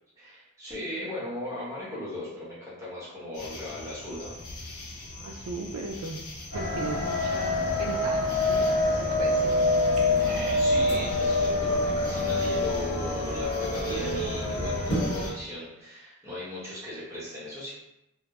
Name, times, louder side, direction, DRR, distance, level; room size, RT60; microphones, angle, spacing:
voice 1, 0.2-4.4 10.2-17.7, left 1 dB, 15° right, -9 dB, 1.0 m, -37 dB
sound 1, 3.3-15.3, left 2 dB, 80° left, 0.5 m, -42 dB
voice 2, 5.0-10.2, right 3 dB, 70° right, 2 dB, 0.3 m, -38 dB
sound 2, 6.5-15.3, left 2 dB, 50° left, 1.2 m, -26 dB
2.2 x 2.1 x 2.9 m, 0.88 s
head